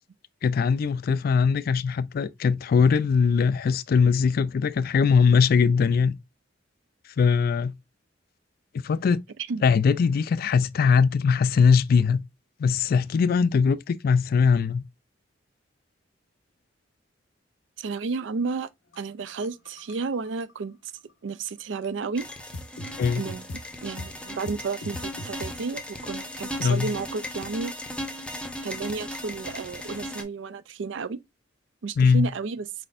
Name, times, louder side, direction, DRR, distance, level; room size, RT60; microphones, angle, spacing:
voice 1, 0.4-6.1 7.2-7.8 8.7-9.2 9.6-12.2 12.6-14.8 23.0-23.2 26.6-26.9 32.0-32.3, left 5 dB, 50° left, 0.3 m, -21 dB
voice 2, 17.8-18.7 19.0-20.8 21.2-22.3 23.2-23.4 23.8-27.7 28.6-31.2 31.8-32.7, right 4 dB, 75° right, 0.4 m, -32 dB
sound 1, 18.9-20.9 21.5-21.6 21.8-21.9 22.3-23.6 24.0-24.1 24.4-25.5 26.4-26.5, left 1 dB, 80° left, 0.7 m, -39 dB
sound 2, 22.2-30.2, left 1 dB, 5° left, 0.6 m, -37 dB
4.3 x 4.1 x 2.5 m
head